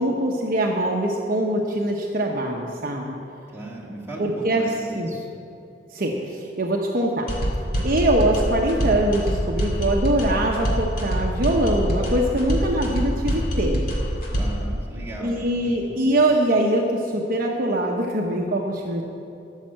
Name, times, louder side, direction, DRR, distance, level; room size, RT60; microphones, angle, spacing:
voice 1, 0.0-3.1 4.2-4.6 5.0-5.1 5.9-7.3 7.8-13.8 15.2-19.0, right 1 dB, 55° right, 0 dB, 1.0 m, -23 dB
voice 2, 3.5-5.3 14.3-15.3 15.6-15.7, right 1 dB, 15° right, -5 dB, 2.4 m, -36 dB
sound 1, 7.3-14.7, equal, 55° left, 2.1 m, -25 dB
13.0 x 6.5 x 7.7 m, 2.6 s
head